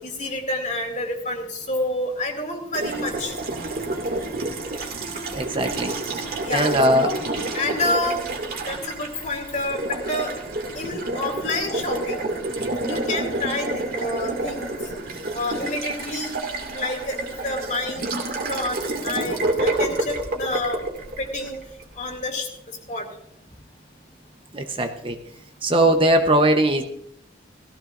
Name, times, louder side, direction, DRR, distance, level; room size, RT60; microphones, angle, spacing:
voice 1, 0.0-3.3 6.4-7.2 7.5-8.2 8.7-10.4 10.7-12.2 12.8-14.6 15.3-16.3 16.7-18.1 18.5-20.8 21.2-21.6 21.9-23.1, left 2 dB, 45° left, 2 dB, 2.5 m, -28 dB
Water tap faucet, 2.7-21.9, right 2 dB, 55° right, 2.3 m, -29 dB
voice 2, 5.3-5.9 6.5-7.1 24.5-25.2 25.6-26.8, right 1 dB, 30° right, 5 dB, 0.9 m, -20 dB
17.5 x 15.0 x 2.6 m, 0.72 s
head